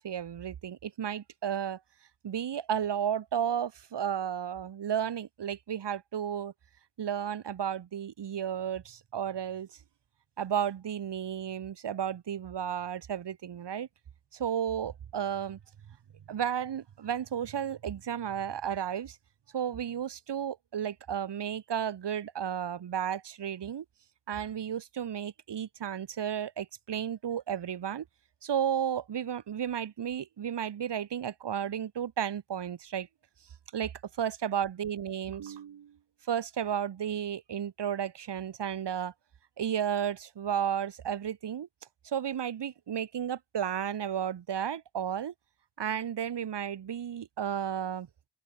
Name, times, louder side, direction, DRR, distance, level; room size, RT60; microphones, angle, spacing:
voice 1, 0.0-1.8 2.2-6.5 7.0-9.7 10.4-13.9 14.3-15.6 16.3-19.2 19.5-23.8 24.3-28.0 28.4-33.1 33.7-35.9 36.3-39.1 39.6-41.7 42.0-45.3 45.8-48.1, right 9 dB, 70° right, 2.7 m, -33 dB
cardioid pair, 70°, 42 cm